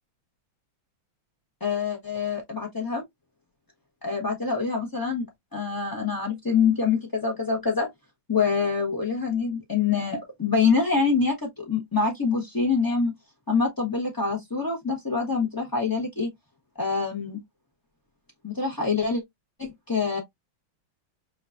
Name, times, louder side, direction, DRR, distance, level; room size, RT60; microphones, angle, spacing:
voice 1, 1.6-3.0 4.0-5.2 5.5-7.9 8.3-13.1 13.5-16.3 16.7-17.4 18.4-19.2 19.6-20.2, left 5 dB, 35° left, 0.3 m, -25 dB
6.4 x 2.4 x 2.5 m
omnidirectional pair, 2.3 m